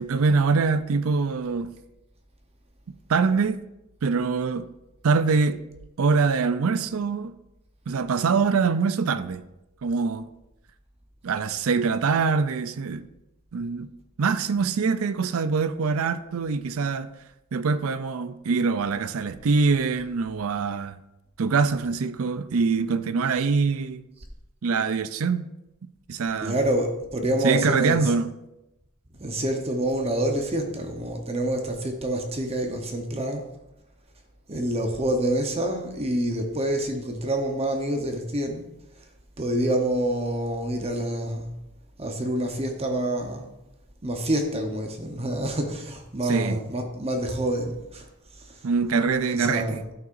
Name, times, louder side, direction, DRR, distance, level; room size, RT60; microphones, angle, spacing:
voice 1, 0.0-1.7 3.1-3.6 4.0-4.7 5.0-5.6 6.0-7.3 7.9-9.4 9.8-10.3 11.2-13.1 13.5-13.9 14.2-17.1 17.5-20.9 21.4-24.0 24.6-25.5 26.1-26.6 27.4-28.3 46.3-46.6 48.6-49.8, right 4 dB, 70° right, 0.5 m, -24 dB
voice 2, 26.4-28.1 29.2-33.4 34.5-38.6 39.4-41.5 42.0-43.5 44.0-48.1 49.3-49.9, right 1 dB, 30° right, 0.9 m, -27 dB
13.0 x 5.8 x 2.6 m
head